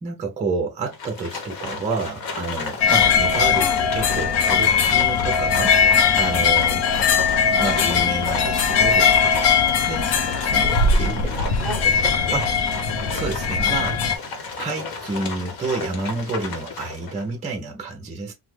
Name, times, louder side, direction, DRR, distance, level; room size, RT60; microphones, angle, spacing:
voice 1, 0.0-3.7 3.9-5.8 6.1-6.9 7.6-11.2 12.3-12.4 13.1-14.0 14.6-18.3, right 3 dB, 20° right, 0.6 m, -29 dB
Livestock farm animals working animals, 0.9-17.3, left 4 dB, 60° left, 1.0 m, -33 dB
sound 1, 2.8-14.2, left 6 dB, 85° left, 0.7 m, -19 dB
voice 2, 3.5-3.8 10.6-12.4, right 1 dB, ahead, 1.1 m, -34 dB
3.2 x 2.1 x 3.2 m
cardioid pair, 175°, 39 cm